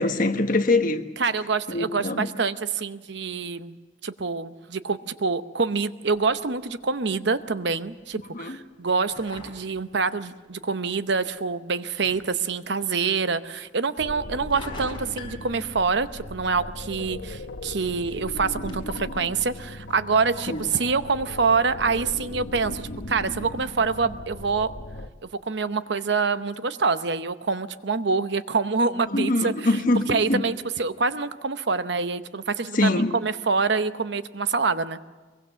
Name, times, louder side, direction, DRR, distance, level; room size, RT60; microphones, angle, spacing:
voice 1, 0.0-1.0 1.7-2.3 8.3-8.6 20.5-20.7 29.1-30.4 32.7-33.1, left 2 dB, 45° left, 7 dB, 1.4 m, -23 dB
voice 2, 1.2-3.7 4.0-24.7 25.2-29.5 30.1-35.0, right 4 dB, 65° right, 12 dB, 0.8 m, -26 dB
sound 1, 6.1-24.7, left 2 dB, 25° left, 4.3 m, -50 dB
sound 2, 14.0-25.1, left 1 dB, 75° left, 1.1 m, -38 dB
23.0 x 22.5 x 6.9 m, 1.3 s
head